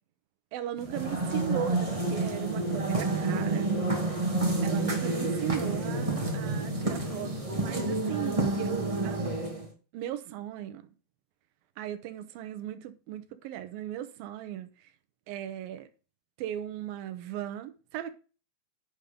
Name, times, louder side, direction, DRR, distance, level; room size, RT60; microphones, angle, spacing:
voice 1, 0.5-3.7 4.6-9.2 9.9-10.8 11.8-14.7 15.3-15.9 16.4-18.1, right 11 dB, 75° right, 2.6 m, -37 dB
sound 1, 0.8-9.7, right 2 dB, 35° right, 0.5 m, -29 dB
11.0 x 5.3 x 5.2 m
omnidirectional pair, 4.6 m